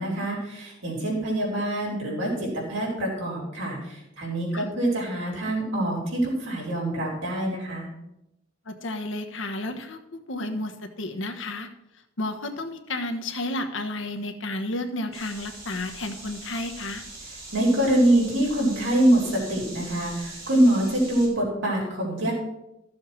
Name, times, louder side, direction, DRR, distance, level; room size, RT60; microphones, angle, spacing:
voice 1, 0.0-7.9 17.5-22.3, right 1 dB, 90° right, -3 dB, 4.3 m, -25 dB
voice 2, 8.7-11.7 12.2-17.0, left 2 dB, 85° left, 7 dB, 1.2 m, -32 dB
sound 1, 15.1-21.3, right 2 dB, 50° right, 4.6 m, -42 dB
13.0 x 7.1 x 4.6 m, 0.86 s
head